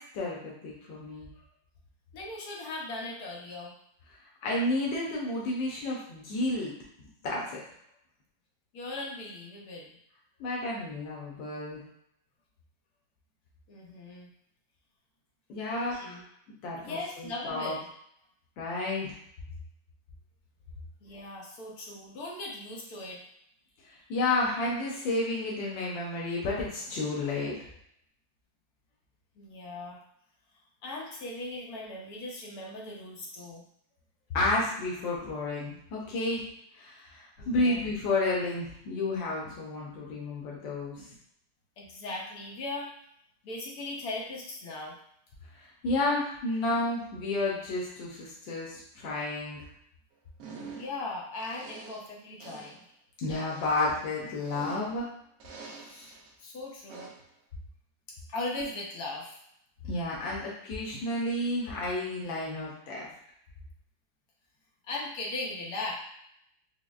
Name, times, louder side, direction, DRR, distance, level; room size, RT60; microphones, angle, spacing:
voice 1, 0.1-1.3 4.4-6.7 7.0-7.6 10.4-11.8 15.5-16.1 16.6-17.7 18.6-19.2 23.9-27.5 34.3-36.5 36.7-41.1 45.6-49.6 53.2-55.1 59.8-63.1, left 2 dB, 85° left, -4 dB, 1.5 m, -31 dB
voice 2, 2.1-3.7 8.7-9.9 13.7-14.3 15.7-16.2 16.8-17.9 21.0-23.2 29.4-30.0 30.8-33.6 37.4-37.8 41.8-42.9 43.4-45.0 50.8-52.9 55.8-57.1 58.3-59.4 64.9-66.0, left 2 dB, 65° left, -2 dB, 1.1 m, -38 dB
sound 1, 50.4-51.1 51.4-52.1 52.4-52.8 53.4-55.1 55.4-56.3 56.9-57.3, right 4 dB, 75° right, 1.3 m, -46 dB
5.1 x 2.0 x 2.3 m, 0.72 s
omnidirectional pair, 2.0 m